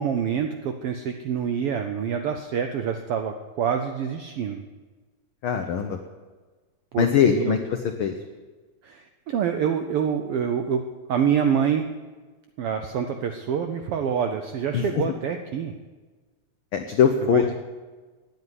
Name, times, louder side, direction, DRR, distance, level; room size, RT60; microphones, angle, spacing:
voice 1, 0.0-4.6 6.9-7.5 8.8-10.8 11.1-11.9 12.6-15.7 17.2-17.5, right 7 dB, 80° right, 6 dB, 1.3 m, -26 dB
voice 2, 5.4-6.0 7.0-7.6 8.0-8.1 14.7-14.8 16.7-17.5, left 7 dB, 90° left, 6 dB, 1.1 m, -21 dB
9.6 x 9.2 x 9.7 m, 1.3 s
omnidirectional pair, 3.4 m